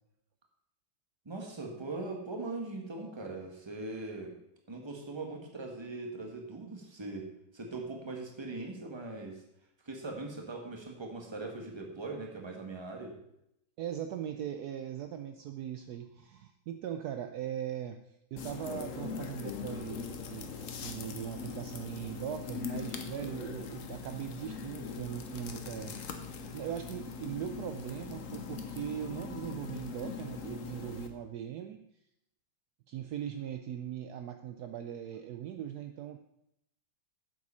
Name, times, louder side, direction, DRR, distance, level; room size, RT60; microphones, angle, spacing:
voice 1, 1.2-4.3 4.7-7.3 7.5-9.4 9.8-13.2, right 3 dB, 15° right, 2 dB, 1.2 m, -40 dB
voice 2, 13.8-18.0 18.3-25.9 26.3-31.8 32.9-36.2, right 10 dB, 80° right, 7 dB, 0.9 m, -40 dB
sound 1, 18.4-31.1, left 5 dB, 55° left, 1.0 m, -41 dB
7.8 x 7.6 x 5.5 m, 0.80 s
omnidirectional pair, 2.2 m